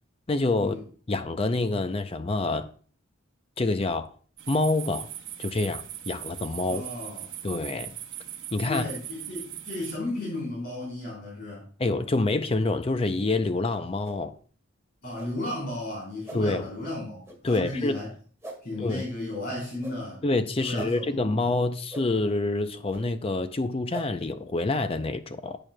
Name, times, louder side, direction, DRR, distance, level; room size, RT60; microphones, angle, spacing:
voice 1, 0.3-0.8 1.1-2.7 3.6-4.1 4.5-5.1 5.4-6.8 7.4-7.9 8.5-8.8 11.8-14.3 16.3-16.6 17.4-18.0 18.8-19.1 20.2-25.6, left 2 dB, 30° left, 0.5 m, -27 dB
sound 1, 4.4-10.0, right 11 dB, 65° right, 1.0 m, -40 dB
voice 2, 6.6-7.3 8.7-11.7 15.0-18.1 18.6-20.2 20.6-21.5, left 1 dB, 50° left, 3.8 m, -34 dB
sound 2, 14.0-14.2 15.1-15.3 16.2-16.4 17.2-17.4 18.4-18.6 19.8-20.0 20.7-20.9 21.9-22.0 22.9-23.0 23.9-24.1, right 2 dB, 15° right, 1.8 m, -39 dB
11.0 x 8.9 x 2.2 m
head